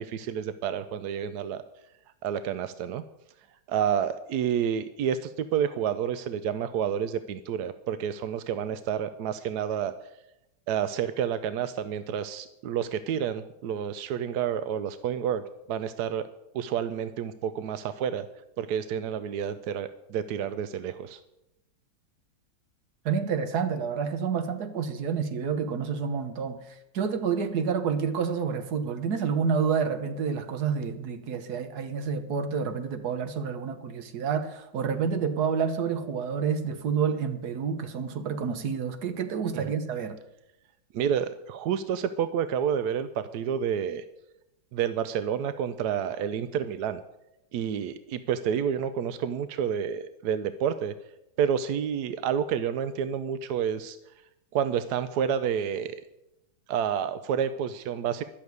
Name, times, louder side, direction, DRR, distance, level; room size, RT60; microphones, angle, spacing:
voice 1, 0.0-1.6 2.2-3.0 3.7-9.9 10.7-16.3 16.5-18.3 18.6-21.2 39.5-39.7 40.9-44.0 44.7-47.0 47.5-50.9 51.4-54.0 54.5-56.0 56.7-58.2, right 8 dB, 70° right, 1.0 m, -29 dB
voice 2, 23.0-40.2, right 6 dB, 55° right, 1.5 m, -29 dB
12.0 x 6.6 x 9.3 m
omnidirectional pair, 2.2 m